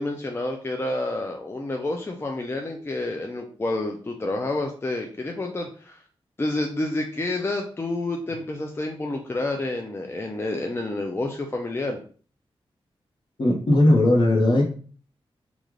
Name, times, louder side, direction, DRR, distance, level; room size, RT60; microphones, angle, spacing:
voice 1, 0.0-6.0 6.4-12.0, left 2 dB, 25° left, 2 dB, 0.5 m, -29 dB
voice 2, 13.4-14.6, left 1 dB, 50° left, -1 dB, 1.1 m, -18 dB
3.2 x 2.5 x 3.7 m, 0.42 s
wide cardioid pair, 80°, 10 cm